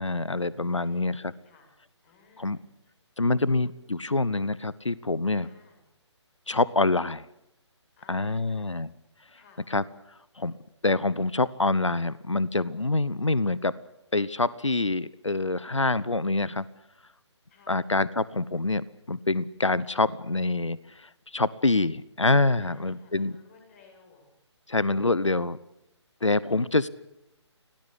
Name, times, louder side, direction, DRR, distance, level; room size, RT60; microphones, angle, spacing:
voice 1, 0.0-1.2 2.4-2.6 3.2-5.5 6.5-7.3 8.1-8.9 9.7-9.8 10.4-10.5 10.8-13.7 14.1-16.6 17.7-23.4 24.7-25.6 26.2-26.9, left 2 dB, 80° left, 19 dB, 0.9 m, -26 dB
voice 2, 0.7-1.7 2.0-2.6 5.3-5.8 8.0-8.8 9.3-9.7 17.5-17.9 22.6-24.2 25.0-25.4, left 4 dB, 30° left, 2 dB, 8.0 m, -57 dB
26.0 x 18.0 x 8.4 m, 0.86 s
figure-of-eight pair, 145°, 15 cm